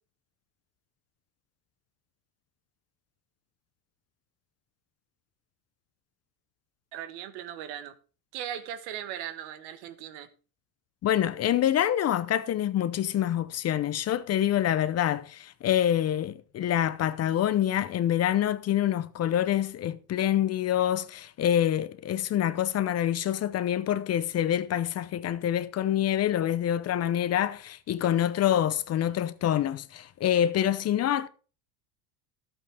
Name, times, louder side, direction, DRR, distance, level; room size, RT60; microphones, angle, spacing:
voice 1, 6.9-7.9 8.3-10.3, right 10 dB, 70° right, 1.5 m, -38 dB
voice 2, 11.0-31.3, left 11 dB, 35° left, 0.7 m, -26 dB
12.0 x 8.7 x 3.4 m
supercardioid pair, 125°, 47 cm